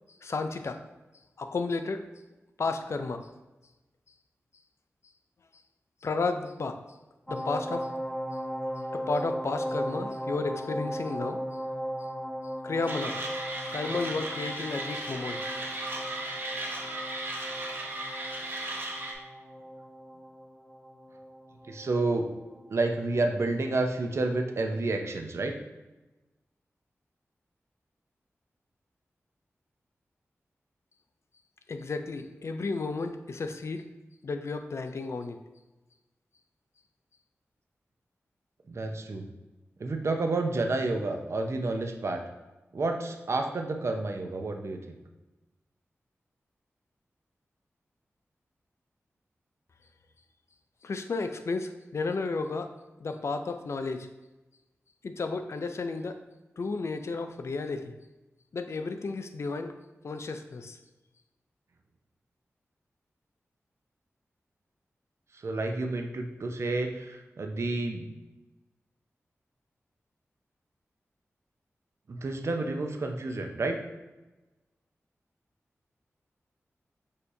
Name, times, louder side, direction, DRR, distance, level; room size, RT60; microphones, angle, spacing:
voice 1, 0.2-0.8 1.4-2.0 2.6-3.3 6.0-6.8 7.3-7.9 8.9-11.4 12.6-13.2 13.7-15.4 31.7-33.8 34.2-35.4 50.8-52.7 53.0-54.1 55.0-56.2 56.6-57.9 58.5-59.7 60.0-60.8, left 3 dB, 65° left, 7 dB, 0.4 m, -32 dB
sound 1, 7.3-22.8 23.2-23.3, equal, 5° left, 0.8 m, -37 dB
Mechanisms, 12.9-19.1, right 2 dB, 45° right, 0.9 m, -36 dB
voice 2, 21.7-22.3 22.7-25.5 38.7-39.2 39.8-42.2 42.7-44.8 65.4-68.1 72.1-73.8, right 2 dB, 60° right, 4 dB, 0.5 m, -30 dB
6.4 x 2.7 x 2.6 m, 1.1 s
cardioid pair, 60°, 5 cm